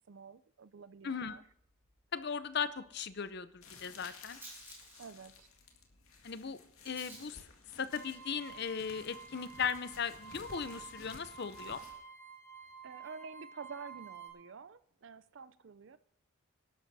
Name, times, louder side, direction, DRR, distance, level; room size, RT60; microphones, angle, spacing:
voice 1, 0.0-1.4 5.0-5.5 12.8-16.0, right 5 dB, 60° right, 0.5 m, -49 dB
voice 2, 1.0-1.4 2.1-4.4 6.2-6.6 6.8-7.4 7.8-11.8, left 6 dB, 50° left, 0.6 m, -37 dB
Rattle, 1.3-11.2, right 1 dB, 10° right, 6.2 m, -59 dB
sound 1, 3.6-12.0, left 4 dB, 80° left, 2.0 m, -55 dB
sound 2, 7.9-14.3, right 6 dB, 15° left, 3.6 m, -51 dB
26.5 x 12.0 x 2.7 m
head